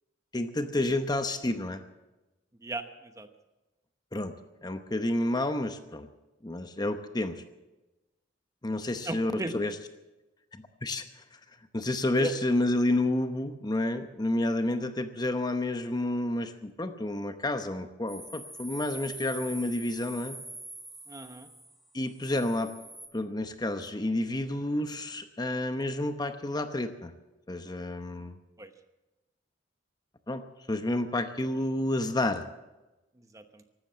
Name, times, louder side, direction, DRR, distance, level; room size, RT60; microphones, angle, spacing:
voice 1, 0.3-1.8 4.1-4.3 4.6-6.1 6.4-7.4 8.6-9.7 10.5-11.2 11.7-20.4 21.9-22.7 23.1-27.1 27.5-28.4 30.3-30.4 30.7-32.5, left 1 dB, 20° left, 8 dB, 0.8 m, -30 dB
voice 2, 2.6-3.3 8.9-9.5 12.2-12.3 21.1-21.5 28.6-28.7 33.2-33.6, right 2 dB, 20° right, 8 dB, 1.0 m, -37 dB
sound 1, 18.1-23.1, right 1 dB, ahead, 1.6 m, -45 dB
15.5 x 12.5 x 7.3 m, 1.0 s
head